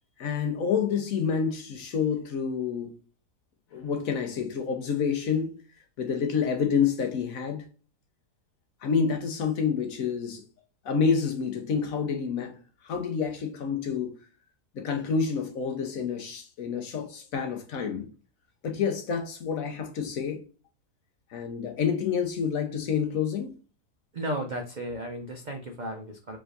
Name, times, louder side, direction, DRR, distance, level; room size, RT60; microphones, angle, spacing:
voice 1, 0.2-2.9 3.7-5.6 6.0-7.7 8.8-10.4 10.8-12.5 12.8-14.2 14.7-18.1 18.6-20.4 21.3-23.5, left 6 dB, 60° left, 1.2 m, -28 dB
voice 2, 24.1-26.4, right 1 dB, 60° right, 0.4 m, -34 dB
4.9 x 3.5 x 2.5 m
omnidirectional pair, 1.7 m